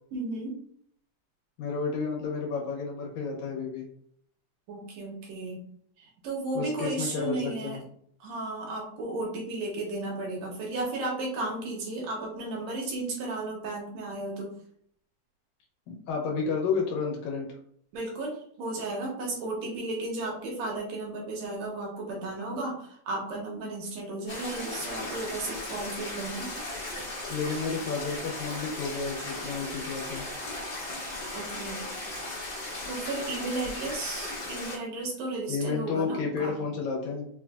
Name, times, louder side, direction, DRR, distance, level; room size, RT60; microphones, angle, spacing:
voice 1, 0.1-0.6 4.7-5.6 6.0-7.8 8.2-14.6 17.9-26.5 31.3-31.9 32.9-36.6, right 2 dB, 75° right, -1 dB, 2.0 m, -34 dB
voice 2, 1.6-3.9 6.5-7.8 15.9-17.5 27.3-30.2 35.5-37.3, left 5 dB, 75° left, -2 dB, 2.2 m, -31 dB
sound 1, 24.3-34.8, left 2 dB, 45° left, 1.3 m, -37 dB
4.9 x 2.5 x 2.3 m, 0.65 s
omnidirectional pair, 3.4 m